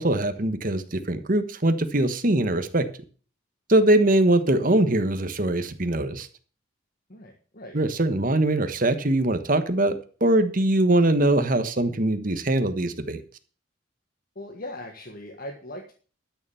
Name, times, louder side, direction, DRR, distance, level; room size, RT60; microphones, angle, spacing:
voice 1, 0.0-2.8 3.7-6.3 7.7-9.9 10.2-13.2, right 1 dB, 45° right, 9 dB, 1.3 m, -22 dB
voice 2, 7.1-7.8 14.3-15.9, left 1 dB, 45° left, 2 dB, 1.6 m, -39 dB
12.5 x 6.9 x 7.0 m, 0.40 s
head